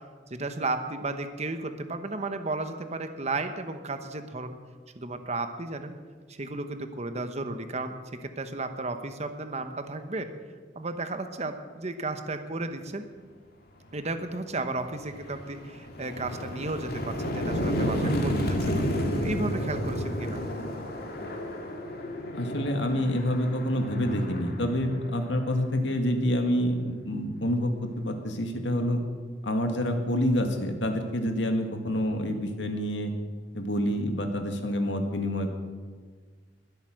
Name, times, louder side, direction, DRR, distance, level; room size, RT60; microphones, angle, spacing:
voice 1, 0.3-4.5 4.9-5.9 6.3-10.3 10.7-13.1 13.9-18.8 19.2-20.4, right 2 dB, 40° right, 8 dB, 1.0 m, -34 dB
sound 1, 14.2-14.3 14.8-25.6, equal, 55° left, 2.1 m, -31 dB
voice 2, 22.3-29.0 29.4-33.1 33.5-35.6, equal, 75° left, 5 dB, 1.9 m, -27 dB
21.0 x 8.2 x 6.5 m, 1.6 s
head